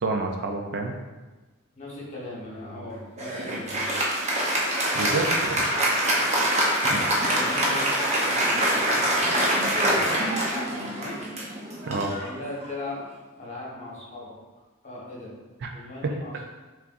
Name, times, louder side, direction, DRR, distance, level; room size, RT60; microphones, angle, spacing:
voice 1, 0.0-0.9 4.9-5.7 6.9-7.0 9.8-10.0 11.9-12.1 15.6-15.7 16.0-16.1, right 3 dB, 55° right, 3 dB, 0.5 m, -28 dB
voice 2, 1.8-4.0 6.8-7.0 7.3-9.3 9.6-10.2 10.4-11.3 12.2-13.0 13.4-14.3 14.8-15.3 15.7-16.4, left 2 dB, 35° left, -5 dB, 1.3 m, -39 dB
Applause, 3.2-13.0, right 1 dB, 30° right, 0.8 m, -25 dB
5.6 x 3.6 x 2.5 m, 1.2 s
head